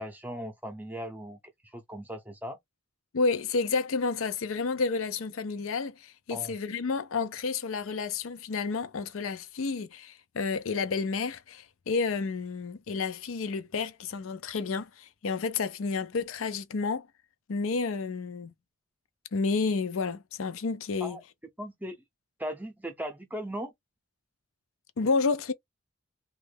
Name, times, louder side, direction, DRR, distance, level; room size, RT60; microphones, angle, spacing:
voice 1, 0.0-1.4 1.7-2.6 6.3-6.6 21.0-21.2 21.6-22.0 22.4-23.7, equal, 10° right, 0.6 m, -38 dB
voice 2, 3.1-17.1 17.5-18.5 19.3-21.2 25.0-25.5, left 4 dB, 80° left, 0.5 m, -30 dB
3.1 x 2.3 x 3.3 m
head